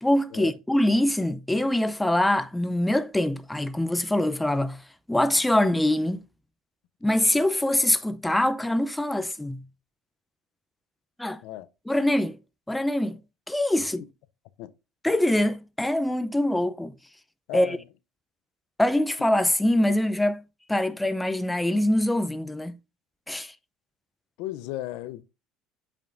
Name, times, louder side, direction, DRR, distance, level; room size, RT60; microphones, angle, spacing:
voice 1, 0.0-4.8 5.1-6.2 7.0-9.6 11.2-11.4 11.9-12.4 12.7-13.2 13.5-14.1 15.0-17.0 17.5-17.8 18.8-20.4 20.7-22.8 23.3-23.5, left 1 dB, 5° left, 0.5 m, -24 dB
voice 2, 17.5-17.8 24.4-25.2, left 14 dB, 75° left, 0.5 m, -35 dB
7.4 x 5.2 x 2.5 m
supercardioid pair, 110°, 0 cm